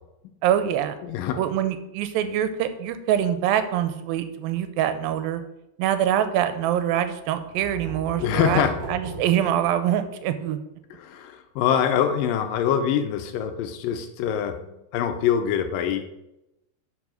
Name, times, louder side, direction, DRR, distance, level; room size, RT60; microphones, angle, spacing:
voice 1, 0.4-1.0 1.4-5.4 5.8-10.6, right 10 dB, 90° right, 10 dB, 2.5 m, -24 dB
voice 2, 1.0-1.4 8.2-8.7 11.0-16.0, left 9 dB, 80° left, 7 dB, 2.3 m, -24 dB
sound 1, 7.2-10.2, right 2 dB, 35° right, 2.4 m, -38 dB
7.3 x 5.6 x 6.2 m, 0.89 s
omnidirectional pair, 4.1 m